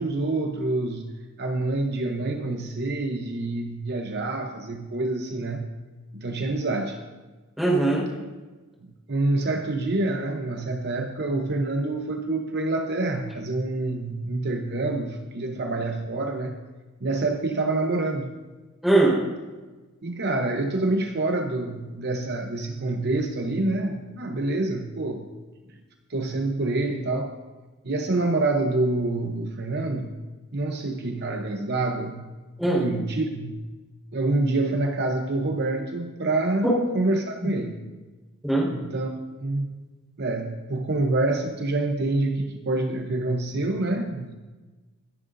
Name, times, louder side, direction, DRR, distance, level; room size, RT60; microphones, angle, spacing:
voice 1, 0.0-5.7 6.1-7.0 9.1-16.6 17.0-18.3 20.0-25.3 25.7-25.8 26.1-27.4 27.8-30.1 30.5-32.3 32.8-33.6 34.1-37.8 38.7-39.1 39.4-39.9 40.2-44.3, right 2 dB, 50° right, 3 dB, 0.9 m, -27 dB
voice 2, 7.6-8.0 18.8-19.2 32.6-32.8 36.6-36.7 38.4-38.7, right 2 dB, ahead, -6 dB, 4.7 m, -20 dB
25.0 x 10.5 x 2.7 m, 1.3 s
head